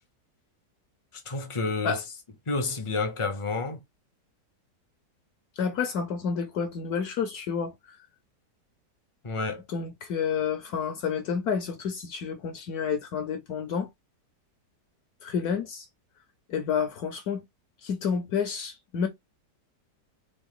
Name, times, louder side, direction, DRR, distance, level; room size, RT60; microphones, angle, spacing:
voice 1, 1.3-2.0 2.5-3.8 9.2-9.6, left 3 dB, 30° left, 0.6 m, -29 dB
voice 2, 5.6-8.0 9.7-13.9 15.2-15.8 16.5-17.4 17.8-19.1, left 6 dB, 70° left, 1.2 m, -29 dB
4.0 x 3.1 x 3.6 m
omnidirectional pair, 1.8 m